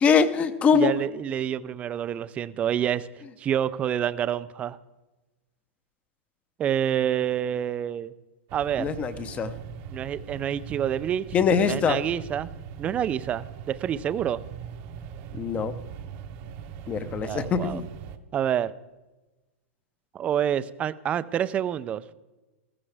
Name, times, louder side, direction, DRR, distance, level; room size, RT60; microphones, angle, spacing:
voice 1, 0.0-0.9 8.8-9.5 11.3-12.0 15.4-15.7 16.9-17.9, left 6 dB, 20° left, 13 dB, 0.7 m, -23 dB
voice 2, 0.7-3.1 3.4-4.8 6.6-8.1 8.5-8.9 9.9-11.3 11.6-12.5 12.8-14.4 17.2-17.8 18.3-18.7 20.1-22.1, right 9 dB, 20° right, 16 dB, 0.4 m, -27 dB
sound 1, 8.5-18.2, right 8 dB, 40° right, 0.8 m, -40 dB
14.5 x 14.0 x 3.4 m, 1.1 s
supercardioid pair, 155°, 7 cm